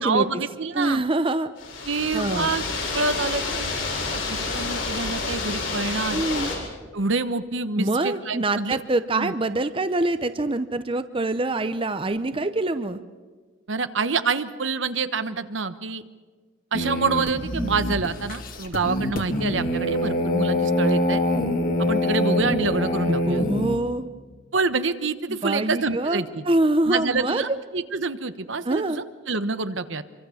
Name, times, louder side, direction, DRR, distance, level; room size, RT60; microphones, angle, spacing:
voice 1, 0.0-1.0 1.8-2.6 2.9-3.7 4.1-6.2 6.9-8.8 9.2-9.3 13.7-16.0 16.7-21.2 21.8-23.5 24.5-26.4 26.9-30.0, right 4 dB, 70° right, 11 dB, 1.2 m, -27 dB
voice 2, 0.7-1.5 2.1-2.5 6.1-6.5 7.8-13.0 23.1-24.1 25.3-27.6 28.6-29.0, right 2 dB, 25° right, 11 dB, 0.7 m, -25 dB
sound 1, 1.6-6.6, left 3 dB, 85° left, 8.0 m, -29 dB
sound 2, 16.7-23.8, left 1 dB, 45° left, 2.4 m, -25 dB
26.0 x 24.5 x 7.2 m, 1.4 s
head